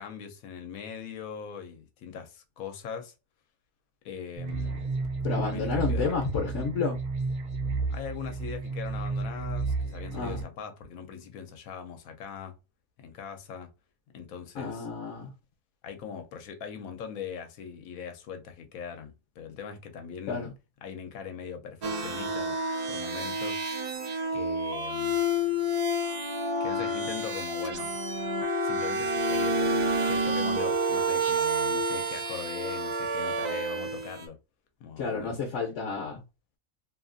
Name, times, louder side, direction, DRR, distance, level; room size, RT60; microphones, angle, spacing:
voice 1, 0.0-3.1 4.0-4.9 5.4-6.2 7.9-12.5 13.0-13.7 14.1-14.9 15.8-20.5 20.8-22.6 22.9-23.6 24.3-25.2 26.6-28.0 28.6-34.4 34.8-35.4, left 7 dB, 85° left, 1.1 m, -41 dB
sound 1, 4.4-10.4, right 3 dB, 60° right, 0.9 m, -32 dB
voice 2, 5.2-7.0 10.1-10.4 14.6-15.3 20.3-20.5 35.0-36.2, left 5 dB, 65° left, 1.0 m, -31 dB
sound 2, 21.8-34.3, right 1 dB, 85° right, 0.3 m, -29 dB
2.8 x 2.4 x 2.5 m
omnidirectional pair, 1.4 m